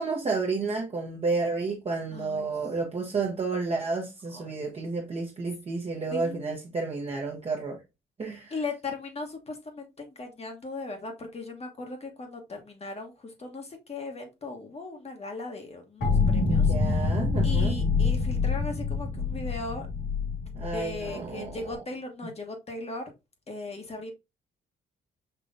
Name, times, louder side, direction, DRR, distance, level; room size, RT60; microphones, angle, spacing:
voice 1, 0.0-7.8 8.2-8.5 16.4-17.7 20.5-21.7, right 3 dB, 30° right, 1.0 m, -31 dB
voice 2, 2.1-2.5 4.3-4.4 6.1-6.6 8.5-17.1 17.4-19.9 20.7-23.1 23.5-24.1, left 3 dB, 30° left, 1.2 m, -38 dB
sound 1, 16.0-21.7, left 4 dB, 90° left, 2.5 m, -26 dB
5.6 x 2.9 x 2.6 m
cardioid pair, 90°, 20 cm